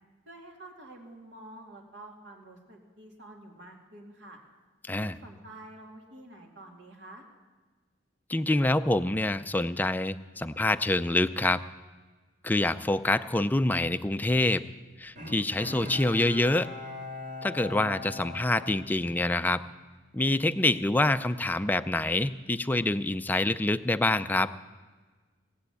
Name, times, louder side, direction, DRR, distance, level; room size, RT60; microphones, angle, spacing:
voice 1, 0.3-4.4 5.0-7.2, right 1 dB, 70° right, 1 dB, 2.4 m, -48 dB
voice 2, 8.3-11.6 12.4-14.7 15.0-16.7 17.4-19.6 20.1-24.5, left 2 dB, 10° left, 11 dB, 0.4 m, -26 dB
Bowed string instrument, 15.2-19.7 20.1-20.2, left 2 dB, 45° right, 2.5 m, -41 dB
18.0 x 7.8 x 8.3 m, 1.4 s
head